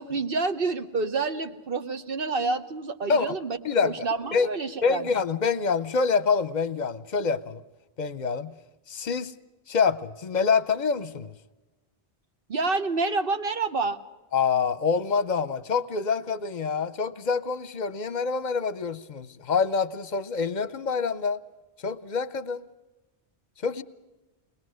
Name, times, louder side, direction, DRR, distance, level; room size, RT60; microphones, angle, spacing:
voice 1, 0.0-5.0 12.5-14.0, right 3 dB, 60° right, 9 dB, 1.2 m, -28 dB
voice 2, 3.6-4.1 4.3-4.5 4.8-7.6 8.0-8.5 8.9-9.3 9.7-11.3 14.3-21.4 21.8-22.6 23.6-23.8, left 5 dB, 45° left, 16 dB, 0.9 m, -26 dB
21.5 x 21.0 x 6.3 m, 1.1 s
omnidirectional pair, 1.1 m